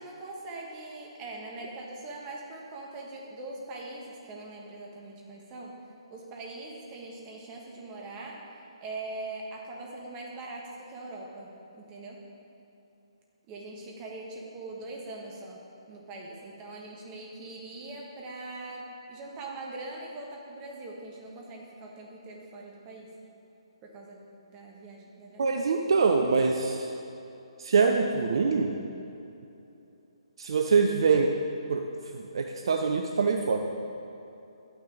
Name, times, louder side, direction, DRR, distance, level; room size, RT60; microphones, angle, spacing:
voice 1, 0.0-5.8 6.1-12.2 13.5-23.1 23.8-25.6 26.0-26.1, right 2 dB, 25° right, -1 dB, 1.5 m, -42 dB
voice 2, 25.4-26.9 27.6-28.7 30.4-31.3 31.7-31.8 32.1-33.6, right 4 dB, 55° right, 4 dB, 0.6 m, -24 dB
11.5 x 9.2 x 3.9 m, 2.9 s
figure-of-eight pair, 135°, 3 cm